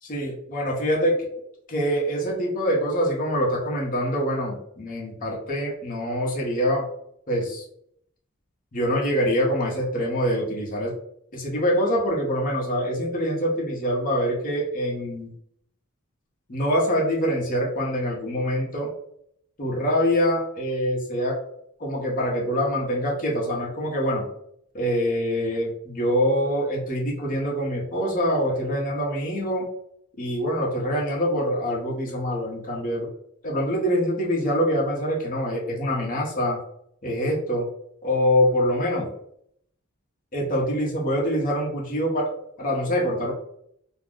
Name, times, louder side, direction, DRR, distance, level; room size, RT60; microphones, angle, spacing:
voice 1, 0.0-1.3 1.7-6.9 7.3-7.6 8.7-10.9 11.3-15.3 16.5-18.9 19.6-21.4 21.8-24.3 24.7-29.7 30.2-33.1 33.4-36.6 37.0-37.7 38.0-39.1 40.3-43.3, equal, 40° left, -2 dB, 0.8 m, -25 dB
2.5 x 2.2 x 3.5 m, 0.71 s
head